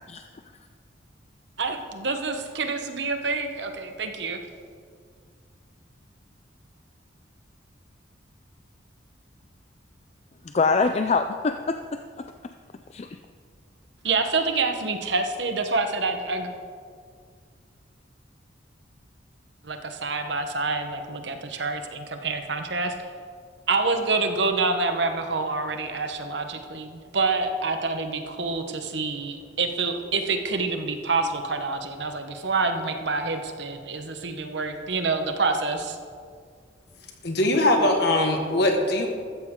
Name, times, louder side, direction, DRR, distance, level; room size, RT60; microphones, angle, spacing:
voice 1, 1.6-4.4 14.0-16.5 19.6-22.9 23.7-36.0, right 3 dB, 60° right, 6 dB, 1.1 m, -27 dB
voice 2, 10.4-12.3 12.9-13.2, left 4 dB, 35° left, 8 dB, 0.4 m, -25 dB
voice 3, 37.2-39.1, left 1 dB, 60° left, 3 dB, 1.7 m, -21 dB
14.5 x 13.5 x 3.8 m, 2.1 s
head